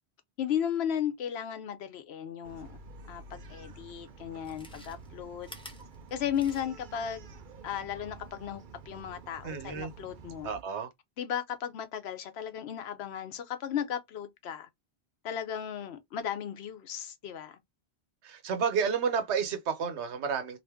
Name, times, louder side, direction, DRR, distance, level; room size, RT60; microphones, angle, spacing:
voice 1, 0.4-2.8 3.1-5.5 6.1-7.3 7.6-10.5 11.2-14.7 15.2-17.6, left 9 dB, 75° left, 0.9 m, -35 dB
Bark, 2.4-10.6, right 4 dB, 55° right, 0.6 m, -49 dB
Chewing mastication, 4.3-7.0 7.3-7.4, equal, 5° left, 0.6 m, -51 dB
voice 2, 9.4-9.9 10.4-10.9 18.2-20.6, right 6 dB, 90° right, 1.1 m, -31 dB
2.6 x 2.5 x 3.4 m
omnidirectional pair, 1.1 m